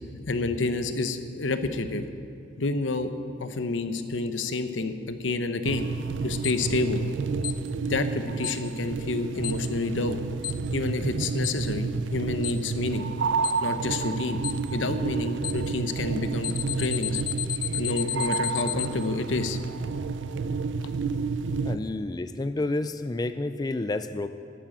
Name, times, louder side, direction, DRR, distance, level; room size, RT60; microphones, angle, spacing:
voice 1, 0.1-2.0 2.6-3.1 3.4-5.9 6.2-7.0 7.9-10.2 10.7-13.1 13.6-14.4 14.7-17.2 17.7-19.6, left 3 dB, 90° left, 9 dB, 0.9 m, -29 dB
sound 1, 5.6-21.8, right 4 dB, 80° right, 0.5 m, -30 dB
Alarm, 6.4-6.5 7.4-7.5 8.4-8.5 9.4-9.5 10.4-10.5 11.4-11.5 12.4-12.5 13.4-13.5 14.4-14.5 15.4-15.5 16.4-18.9, left 12 dB, 50° left, 0.8 m, -30 dB
sound 2, 18.0-21.9, equal, 70° left, 3.5 m, -52 dB
voice 2, 21.6-24.3, left 2 dB, 20° left, 10 dB, 0.3 m, -30 dB
11.5 x 9.1 x 8.8 m, 2.8 s
head